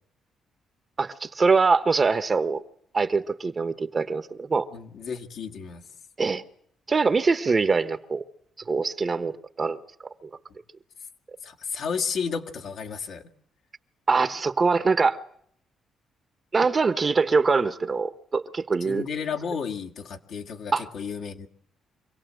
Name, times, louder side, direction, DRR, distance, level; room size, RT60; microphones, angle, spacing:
voice 1, 1.0-2.6 2.9-4.7 6.2-6.4 6.9-8.3 8.7-9.8 10.2-10.3 14.1-15.2 16.5-19.1 20.7-20.9, right 4 dB, 35° right, 1.2 m, -23 dB
voice 2, 4.7-5.8 11.4-13.3 18.9-21.5, left 6 dB, 70° left, 2.1 m, -32 dB
25.5 x 17.0 x 7.8 m
cardioid pair, 90°, 0 cm